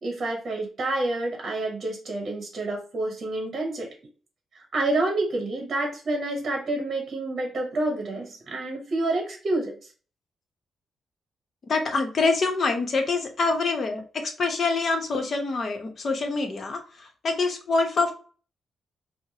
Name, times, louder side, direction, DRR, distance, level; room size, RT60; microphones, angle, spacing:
voice 1, 0.0-3.9 4.5-9.8, right 2 dB, 45° right, 1 dB, 1.0 m, -28 dB
voice 2, 11.7-18.1, left 3 dB, 50° left, 4 dB, 0.8 m, -25 dB
4.6 x 2.1 x 2.8 m, 0.38 s
cardioid pair, 105°, 0 cm